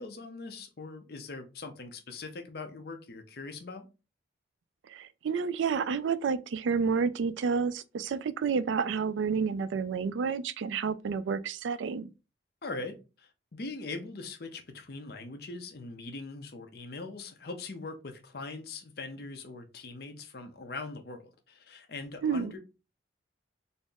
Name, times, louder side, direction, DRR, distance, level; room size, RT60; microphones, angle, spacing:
voice 1, 0.0-3.9 12.6-22.6, left 3 dB, 55° left, 0.6 m, -41 dB
voice 2, 4.9-12.1 22.2-22.5, right 5 dB, 85° right, 0.3 m, -30 dB
4.1 x 2.0 x 3.4 m
head